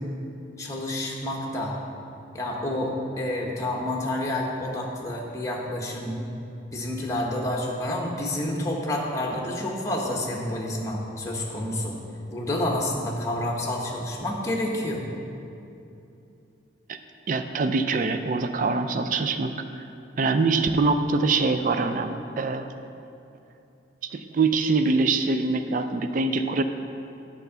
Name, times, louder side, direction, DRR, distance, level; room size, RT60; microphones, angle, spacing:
voice 1, 0.6-1.8 2.3-6.2 6.7-12.0 12.3-15.0, left 1 dB, 15° left, -2 dB, 0.9 m, -29 dB
voice 2, 17.3-19.8 20.2-22.7 24.1-26.6, right 3 dB, 40° right, 8 dB, 0.3 m, -24 dB
8.2 x 4.4 x 6.8 m, 2.7 s
head